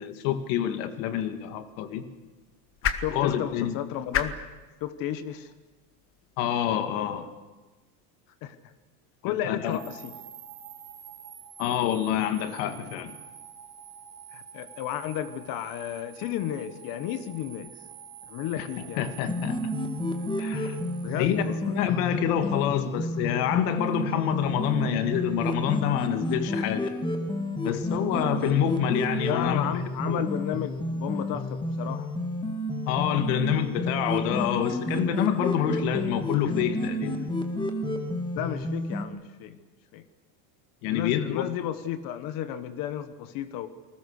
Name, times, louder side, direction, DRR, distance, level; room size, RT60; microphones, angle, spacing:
voice 1, 0.0-2.1 3.1-3.8 6.4-7.3 9.2-9.8 11.6-13.2 18.5-18.7 19.0-19.7 20.4-20.8 21.2-27.0 27.6-29.7 30.1-30.2 32.9-37.3 40.8-41.5, left 10 dB, 60° left, 9 dB, 2.2 m, -27 dB
sound 1, 1.0-7.2, left 8 dB, 30° left, 1.3 m, -37 dB
voice 2, 3.0-4.4 4.8-5.5 8.4-8.6 9.2-10.1 14.3-17.7 18.3-19.4 21.0-21.7 29.2-32.1 38.3-39.6 39.9-40.0 40.9-43.7, left 10 dB, 45° left, 12 dB, 1.4 m, -33 dB
sound 2, 9.6-21.8, right 9 dB, 30° right, 3.3 m, -47 dB
sound 3, 19.3-39.0, left 1 dB, 10° left, 1.9 m, -31 dB
29.0 x 20.5 x 6.6 m, 1.2 s
supercardioid pair, 155°, 47 cm